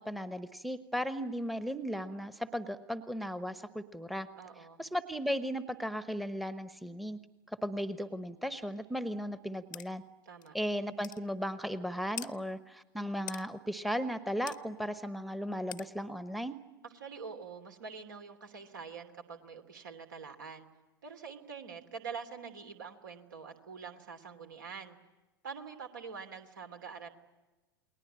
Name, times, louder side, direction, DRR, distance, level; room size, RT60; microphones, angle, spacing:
voice 1, 0.0-4.3 4.8-7.2 7.5-10.0 10.5-16.6, equal, ahead, 13 dB, 1.1 m, -36 dB
voice 2, 4.4-4.8 10.3-10.5 16.8-20.7 21.0-25.0 25.4-27.1, right 5 dB, 70° right, 6 dB, 2.9 m, -45 dB
sound 1, 9.7-9.9 10.4-10.5 11.0-11.2 12.2-12.3 13.3-13.4 14.5-14.6 15.7-15.9, left 12 dB, 65° left, 0.8 m, -42 dB
29.5 x 20.5 x 8.8 m, 1.1 s
figure-of-eight pair, 85°, 11 cm